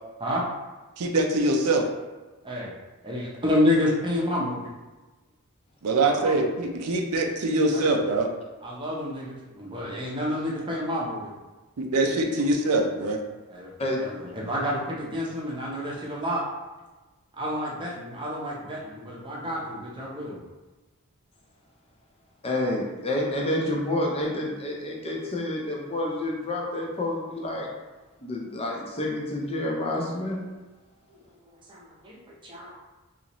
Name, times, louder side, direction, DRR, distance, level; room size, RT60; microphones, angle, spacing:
voice 1, 1.0-1.8 5.8-8.3 11.8-13.2, right 2 dB, 85° right, 3 dB, 0.5 m, -23 dB
voice 2, 3.0-4.7 5.9-6.3 7.7-8.0 8.6-11.3 13.5-13.7 14.0-16.4 17.4-20.4 31.1-32.7, left 1 dB, 20° right, -4 dB, 0.7 m, -29 dB
voice 3, 22.4-27.7 28.2-30.4, left 1 dB, 25° left, -1 dB, 0.5 m, -29 dB
3.9 x 2.5 x 3.0 m, 1.2 s
head